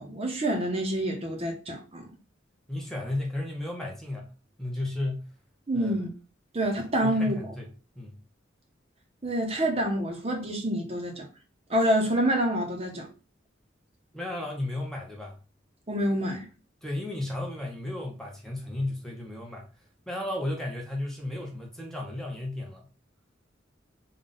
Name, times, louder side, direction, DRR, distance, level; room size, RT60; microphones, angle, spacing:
voice 1, 0.0-2.1 5.7-6.1 6.5-7.4 9.2-11.3 11.7-13.1 15.9-16.5, right 1 dB, 30° right, 0.7 m, -27 dB
voice 2, 2.7-4.3 4.6-5.3 5.7-5.9 7.0-7.7 8.0-8.2 14.1-15.4 16.8-19.7 20.1-22.9, left 1 dB, ahead, 0.7 m, -34 dB
3.7 x 2.3 x 3.8 m
head